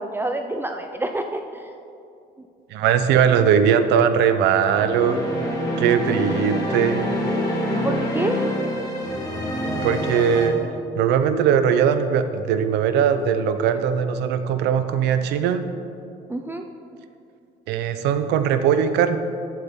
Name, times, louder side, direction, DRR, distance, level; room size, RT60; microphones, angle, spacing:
voice 1, 0.0-1.7 7.7-8.4 16.3-16.6, right 2 dB, 15° right, 5 dB, 0.5 m, -27 dB
voice 2, 2.7-5.2 5.8-7.0 9.8-10.6 11.0-15.6 17.7-19.2, right 8 dB, 85° right, 10 dB, 0.7 m, -20 dB
sound 1, 4.7-10.5, left 1 dB, 20° left, 2.4 m, -26 dB
14.0 x 7.9 x 3.7 m, 2.6 s
cardioid pair, 110°, 17 cm